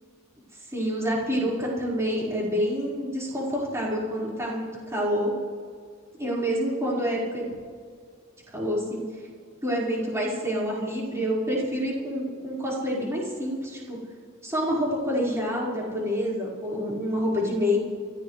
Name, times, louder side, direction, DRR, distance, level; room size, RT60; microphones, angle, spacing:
voice 1, 0.7-5.3 6.2-7.4 8.5-9.0 9.6-14.0 14.4-17.8, equal, 15° right, -6 dB, 4.8 m, -27 dB
29.0 x 14.0 x 3.3 m, 2.1 s
head